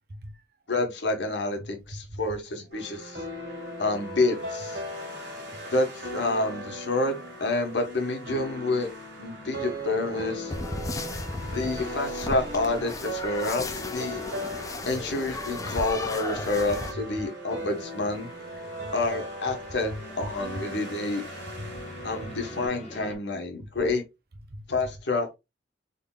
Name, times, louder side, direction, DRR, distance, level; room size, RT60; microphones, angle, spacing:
voice 1, 0.1-0.4 1.9-2.2 5.5-5.6 10.8-11.6 16.9-17.0 19.9-20.3 20.6-20.7 21.5-21.8 22.2-22.3 24.5-24.9, equal, 55° right, 0.8 m, -40 dB
voice 2, 0.7-3.2 3.8-4.8 5.7-7.1 7.4-8.9 9.2-10.5 11.5-14.2 14.9-18.3 18.9-21.2 22.0-24.0 24.7-25.3, left 2 dB, 70° left, 1.2 m, -28 dB
sound 1, 2.7-22.7, equal, 75° right, 2.2 m, -38 dB
sound 2, 10.5-16.9, left 2 dB, 20° left, 0.4 m, -35 dB
sound 3, 18.1-23.2, left 1 dB, 35° left, 0.9 m, -46 dB
3.8 x 3.4 x 2.3 m
head